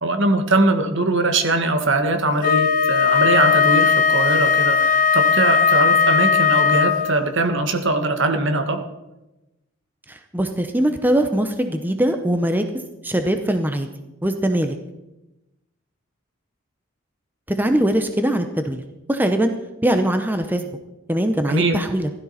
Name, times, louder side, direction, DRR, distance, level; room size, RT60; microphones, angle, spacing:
voice 1, 0.0-8.8 21.5-21.8, right 2 dB, 60° right, 6 dB, 1.5 m, -21 dB
Wind instrument woodwind instrument, 2.4-7.3, left 6 dB, 40° left, 0.7 m, -17 dB
voice 2, 10.1-12.7 13.0-13.9 14.2-14.8 17.5-18.8 19.1-19.5 19.8-20.7 21.1-22.1, right 1 dB, 10° right, 7 dB, 0.7 m, -21 dB
16.0 x 13.0 x 4.2 m, 0.96 s
head